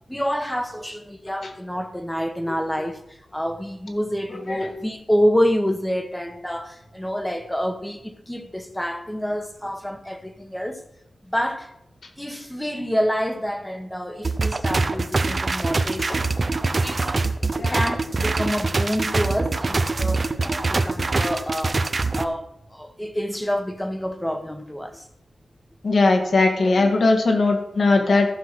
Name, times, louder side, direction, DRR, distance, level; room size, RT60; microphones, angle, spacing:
voice 1, 0.1-10.8 11.2-11.7 12.2-16.3 16.8-17.2 17.7-21.8 22.1-25.0, equal, 5° left, 1.2 m, -27 dB
sound 1, 14.2-22.2, right 3 dB, 35° right, 0.7 m, -24 dB
voice 2, 25.8-28.3, left 3 dB, 60° left, 1.9 m, -19 dB
14.5 x 5.8 x 6.1 m
wide cardioid pair, 140°, 0 cm